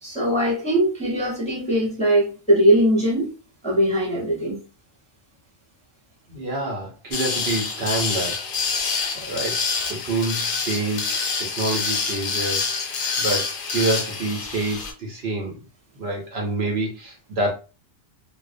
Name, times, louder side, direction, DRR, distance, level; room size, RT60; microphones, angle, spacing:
voice 1, 0.0-3.3 3.6-4.6, right 1 dB, 5° left, 0.6 m, -20 dB
voice 2, 6.3-8.9 9.3-12.7 13.2-15.6 16.0-17.5, right 2 dB, 60° right, 0.9 m, -27 dB
sound 1, 7.1-14.9, left 4 dB, 60° left, 0.6 m, -26 dB
2.4 x 2.1 x 2.5 m
omnidirectional pair, 1.3 m